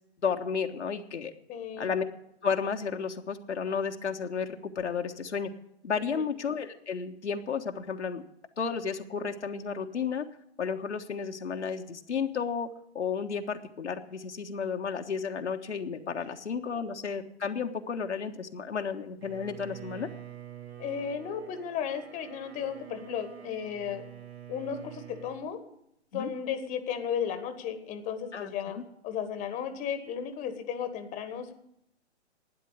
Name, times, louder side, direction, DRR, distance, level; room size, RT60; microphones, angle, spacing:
voice 1, 0.2-1.3 1.8-2.0 2.4-5.5 5.8-8.2 8.6-10.2 10.6-12.7 12.9-20.1 26.1-26.3 28.3-28.8, left 6 dB, 80° left, 4 dB, 1.5 m, -32 dB
voice 2, 1.5-1.9 6.0-6.2 20.8-24.0 24.5-25.6 26.1-31.5, left 8 dB, 20° left, 9 dB, 1.4 m, -34 dB
Bowed string instrument, 19.2-25.5, right 11 dB, 60° right, 2.0 m, -47 dB
12.0 x 9.4 x 8.1 m, 0.76 s
hypercardioid pair, 130°, 34 cm